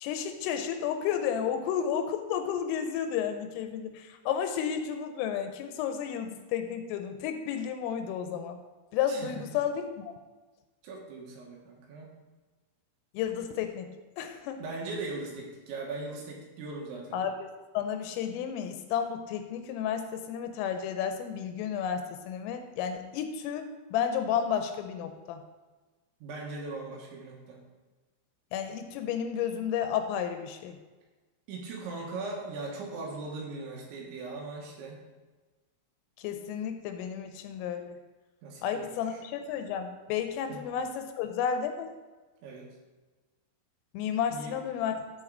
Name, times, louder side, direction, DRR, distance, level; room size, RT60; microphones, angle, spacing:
voice 1, 0.0-8.6 8.9-10.1 13.1-14.6 17.1-17.5 17.7-25.4 28.5-30.8 36.2-37.9 38.6-41.9 43.9-45.0, left 8 dB, 85° left, 7 dB, 3.2 m, -32 dB
voice 2, 10.8-12.1 14.6-17.2 26.2-27.6 31.5-35.0 38.4-39.2 40.5-40.6 42.4-42.7 44.3-44.6, right 3 dB, 70° right, -2 dB, 3.3 m, -39 dB
13.0 x 4.6 x 3.8 m, 1.2 s
omnidirectional pair, 6.0 m